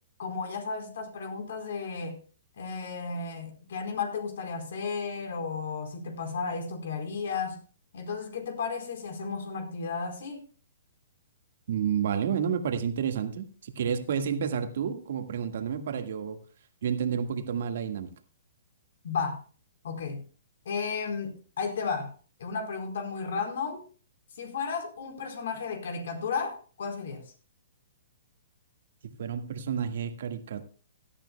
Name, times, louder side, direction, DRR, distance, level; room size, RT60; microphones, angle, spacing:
voice 1, 0.2-2.2 2.6-7.6 7.9-10.5 19.0-19.4 19.8-20.2 20.6-22.1 22.4-23.8 24.4-27.2, left 5 dB, 70° left, 4.3 m, -33 dB
voice 2, 11.7-16.4 16.8-18.1 29.2-30.6, right 7 dB, 65° right, 1.7 m, -30 dB
17.5 x 12.5 x 2.3 m
hypercardioid pair, 135°, 0 cm